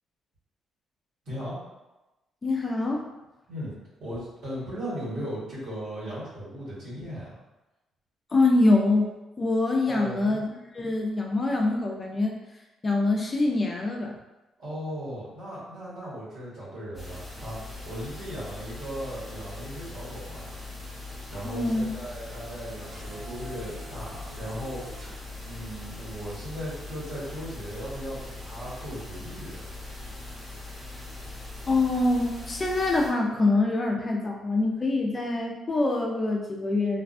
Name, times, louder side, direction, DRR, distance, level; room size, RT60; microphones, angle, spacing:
voice 1, 1.2-1.6 3.5-3.7 4.0-7.3 9.9-10.4 14.6-20.5 21.3-24.8 25.4-29.6, equal, 80° right, -9 dB, 1.4 m, -37 dB
voice 2, 2.4-3.1 8.3-10.4 10.7-12.4 12.8-14.2 21.4-22.0 31.7-37.0, left 2 dB, 30° left, 0 dB, 0.4 m, -25 dB
sound 1, 16.9-33.1, left 2 dB, 10° left, 0.9 m, -41 dB
sound 2, 22.9-25.1, equal, 50° right, 0.5 m, -44 dB
2.5 x 2.2 x 2.5 m, 1.0 s
cardioid pair, 90°, 0 cm